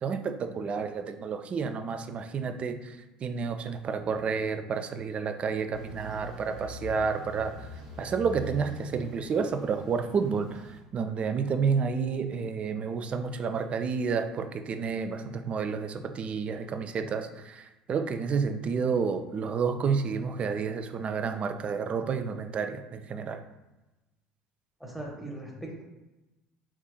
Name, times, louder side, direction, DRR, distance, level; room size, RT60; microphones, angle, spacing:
voice 1, 0.0-7.7 8.0-23.4, right 5 dB, 35° right, 9 dB, 0.3 m, -30 dB
sound 1, 5.7-10.8, right 1 dB, 75° right, 1.0 m, -43 dB
voice 2, 24.8-25.8, right 1 dB, 5° right, -1 dB, 0.9 m, -39 dB
4.1 x 3.6 x 2.2 m, 1.0 s
figure-of-eight pair, 60°, 4 cm